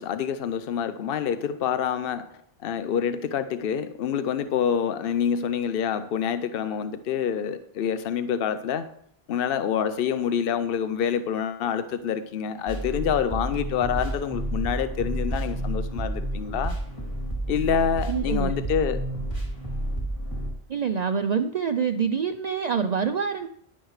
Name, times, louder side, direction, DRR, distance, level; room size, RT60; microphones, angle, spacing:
voice 1, 0.0-2.3 2.6-8.9 9.3-16.8 17.5-19.0, left 8 dB, 70° left, 0.8 m, -27 dB
sound 1, 12.7-20.5, right 1 dB, 30° left, 2.6 m, -30 dB
voice 2, 18.1-18.5 20.7-23.5, right 6 dB, 50° right, 0.6 m, -26 dB
11.5 x 10.5 x 3.2 m
omnidirectional pair, 1.0 m